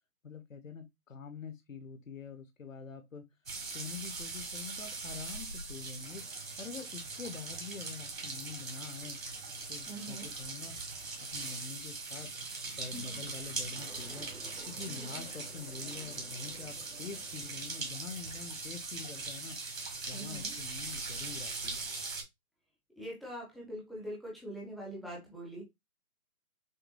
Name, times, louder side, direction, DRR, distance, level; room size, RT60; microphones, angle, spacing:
voice 1, 0.2-3.2 3.6-6.2 6.6-9.2 9.7-10.8 11.2-12.3 12.8-14.3 14.7-19.6 20.1-21.9, left 5 dB, 60° left, 0.9 m, -45 dB
sound 1, 3.5-22.2, right 3 dB, 60° right, 1.7 m, -41 dB
voice 2, 9.9-10.3 12.9-13.2 14.9-15.2 20.1-20.6 23.0-25.7, equal, ahead, 0.6 m, -43 dB
sound 2, 13.7-18.7, right 2 dB, 80° right, 2.5 m, -55 dB
6.5 x 2.2 x 2.5 m
hypercardioid pair, 180°, 45 cm